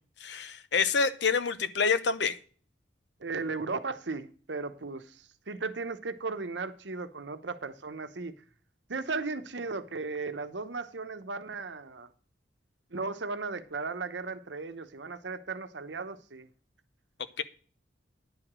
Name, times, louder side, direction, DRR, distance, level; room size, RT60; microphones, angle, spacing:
voice 1, 0.2-2.4 17.4-17.5, left 5 dB, 75° left, 0.7 m, -27 dB
voice 2, 3.2-8.4 8.9-12.1 12.9-16.5, right 4 dB, 80° right, 0.9 m, -36 dB
10.5 x 4.9 x 7.4 m
head